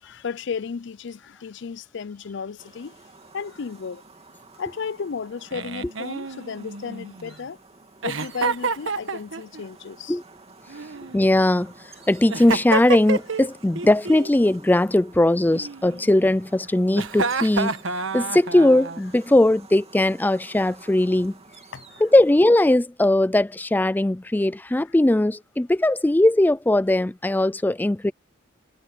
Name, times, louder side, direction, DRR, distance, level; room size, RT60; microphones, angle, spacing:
voice 1, 0.0-3.0 3.3-4.0 4.6-7.6 8.0-10.2 10.7-10.9 21.7-22.0, left 5 dB, 65° left, 0.5 m, -34 dB
sound 1, 2.6-22.4, right 3 dB, 30° right, 2.9 m, -50 dB
Giggle, 5.5-7.3 8.0-9.6 10.7-11.6 12.3-13.5 13.8-14.3 15.5-16.3 16.9-19.0, right 4 dB, 80° right, 1.5 m, -29 dB
voice 2, 11.1-11.7 12.1-17.7 18.1-21.4 22.0-28.1, left 1 dB, 10° left, 0.4 m, -19 dB
head